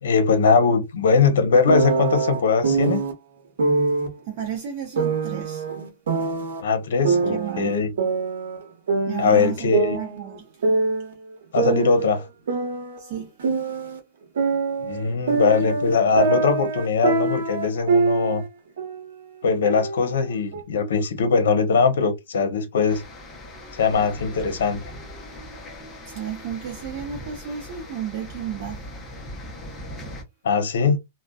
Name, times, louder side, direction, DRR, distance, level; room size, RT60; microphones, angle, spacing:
voice 1, 0.0-3.0 6.6-7.9 9.2-10.0 11.5-12.3 14.8-18.4 19.4-23.0 23.7-24.8 30.4-31.0, left 5 dB, 80° left, 0.8 m, -21 dB
sound 1, 1.7-3.1 3.6-4.1 5.0-6.6 7.0-8.6 8.9-11.1 11.5-14.0 14.4-18.5 18.8-19.1 19.6-20.6, right 4 dB, 80° right, 0.9 m, -24 dB
voice 2, 4.2-5.7 7.0-7.7 9.1-10.7 13.0-13.3 26.1-28.8, right 8 dB, 40° right, 0.7 m, -33 dB
sound 2, 22.9-30.2, left 1 dB, 15° left, 0.6 m, -39 dB
2.6 x 2.1 x 2.2 m
hypercardioid pair, 160°, 0 cm